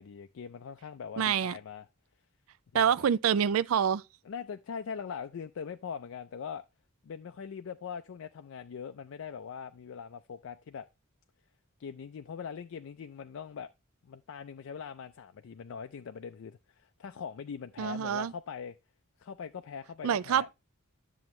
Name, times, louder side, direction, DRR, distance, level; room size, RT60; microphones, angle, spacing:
voice 1, 0.0-1.9 2.7-2.9 4.3-6.6 7.0-10.9 11.8-13.7 14.0-18.8 19.2-20.5, left 6 dB, 65° left, 0.4 m, -41 dB
voice 2, 1.2-1.5 2.7-4.0 17.8-18.3 20.0-20.5, right 8 dB, 75° right, 0.4 m, -26 dB
10.5 x 7.0 x 3.1 m
head